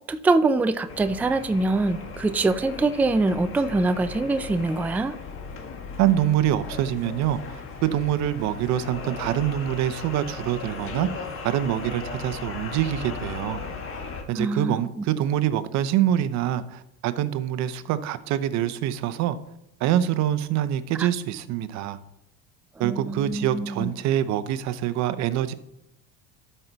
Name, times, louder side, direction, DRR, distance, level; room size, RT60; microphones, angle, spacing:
voice 1, 0.1-5.1 14.4-15.1 21.0-21.1 22.8-23.9, right 3 dB, 5° right, 0.3 m, -24 dB
sound 1, 0.9-14.2, left 4 dB, 45° left, 1.5 m, -37 dB
voice 2, 6.0-13.6 14.3-19.4 19.8-22.0 22.8-25.5, right 11 dB, 65° right, 0.8 m, -25 dB
12.5 x 5.6 x 4.0 m
cardioid pair, 115°, 30 cm